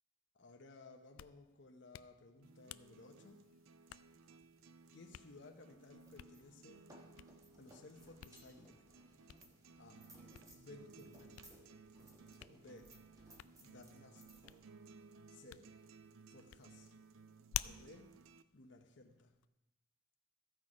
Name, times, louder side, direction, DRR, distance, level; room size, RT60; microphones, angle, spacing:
voice 1, 0.3-3.4 4.9-6.8 7.6-8.9 9.8-10.0 10.6-11.7 12.5-12.9 13.6-14.3 15.3-15.7 16.3-16.9 17.6-18.1 18.5-19.3, left 2 dB, 60° left, 3 dB, 0.9 m, -58 dB
Hands, 0.9-19.5, left 13 dB, 85° left, 0.3 m, -53 dB
sound 1, 2.4-18.4, right 4 dB, 80° right, 0.5 m, -60 dB
sound 2, 5.9-15.9, right 1 dB, 15° right, 1.3 m, -64 dB
14.0 x 6.4 x 4.9 m, 1.0 s
head